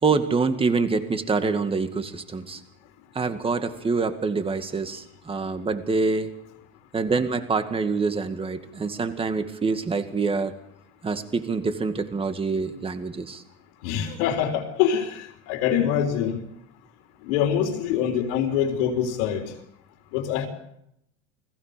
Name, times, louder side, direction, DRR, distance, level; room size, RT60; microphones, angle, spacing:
voice 1, 0.0-2.6 3.1-6.3 6.9-10.5 11.0-13.4, right 4 dB, 15° right, 9 dB, 2.0 m, -26 dB
voice 2, 13.8-16.4 17.2-19.5 20.1-20.5, left 9 dB, 75° left, 2 dB, 3.9 m, -24 dB
29.5 x 20.5 x 5.2 m, 0.77 s
supercardioid pair, 145°, 35 cm